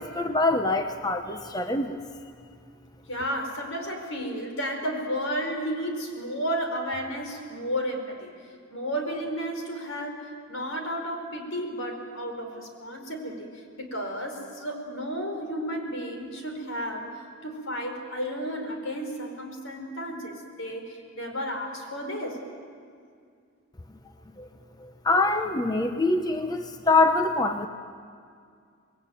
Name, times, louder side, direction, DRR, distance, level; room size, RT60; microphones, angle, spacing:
voice 1, 0.0-2.0 24.4-24.5 24.8-27.7, left 2 dB, 20° left, 6 dB, 0.9 m, -24 dB
voice 2, 3.1-8.3 8.7-22.4, equal, 80° left, 4 dB, 4.9 m, -33 dB
26.5 x 20.5 x 9.3 m, 2.2 s
head